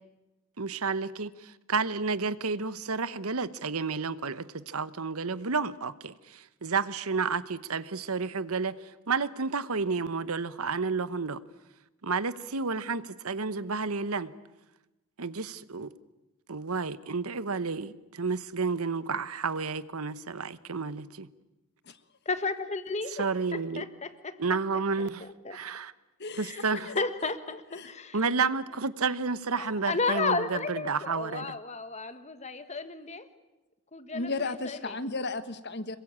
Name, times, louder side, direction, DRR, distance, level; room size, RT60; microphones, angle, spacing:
voice 1, 0.6-8.7 9.1-11.4 12.0-14.3 15.2-15.9 16.5-21.3 23.2-23.8 24.4-25.2 25.5-25.9 26.4-26.9 28.1-31.5, right 4 dB, 75° right, 15 dB, 1.0 m, -31 dB
voice 2, 22.2-24.4 24.7-24.8 25.2-25.6 26.4-28.2 29.5-33.3 33.9-35.0, left 4 dB, 30° left, 11 dB, 1.5 m, -33 dB
voice 3, 26.2-26.5 26.9-27.0 27.7-27.9 34.1-36.0, left 3 dB, 50° left, 12 dB, 1.4 m, -34 dB
26.5 x 22.5 x 8.7 m, 1.0 s
head